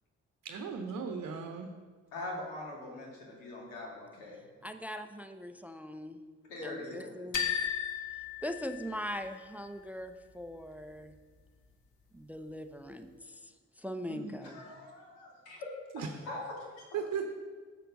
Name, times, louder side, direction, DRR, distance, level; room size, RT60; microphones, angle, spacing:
voice 1, 0.4-1.7 14.1-14.4 15.9-16.2 16.9-17.2, right 6 dB, 50° right, 5 dB, 0.9 m, -37 dB
voice 2, 2.1-4.4 6.5-7.1 14.4-15.6 16.3-16.4, left 2 dB, 75° left, -2 dB, 2.2 m, -42 dB
voice 3, 4.6-6.2 6.6-7.5 8.4-11.1 12.1-14.7, equal, 5° right, 8 dB, 0.6 m, -41 dB
sound 1, 7.3-9.3, left 9 dB, 55° left, 1.4 m, -35 dB
7.2 x 6.7 x 5.3 m, 1.5 s
figure-of-eight pair, 40°, 36 cm